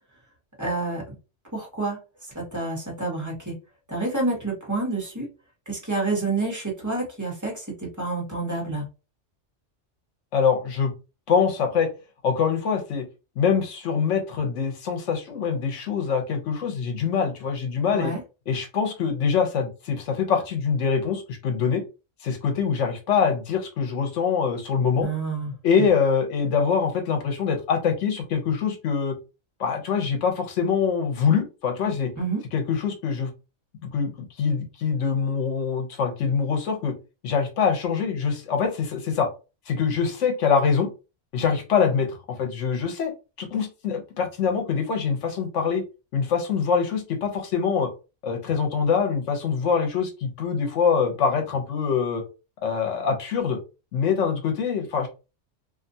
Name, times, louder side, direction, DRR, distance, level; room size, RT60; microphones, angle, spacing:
voice 1, 0.6-1.1 1.5-2.0 2.3-3.6 3.9-5.3 5.7-8.9 17.9-18.2 25.0-25.5 25.8-25.9 32.2-32.4, right 3 dB, 15° right, -3 dB, 1.1 m, -28 dB
voice 2, 10.3-10.9 11.3-11.9 12.2-13.0 13.4-18.1 18.5-21.8 22.2-25.1 25.6-29.1 29.6-32.1 32.5-33.3 33.8-34.1 34.4-36.9 37.2-39.3 39.7-40.9 41.3-43.1 43.4-45.8 46.1-47.9 48.2-52.2 52.6-53.6 53.9-55.1, left 6 dB, 80° left, 4 dB, 1.1 m, -24 dB
2.7 x 2.4 x 2.6 m, 0.30 s
omnidirectional pair, 1.2 m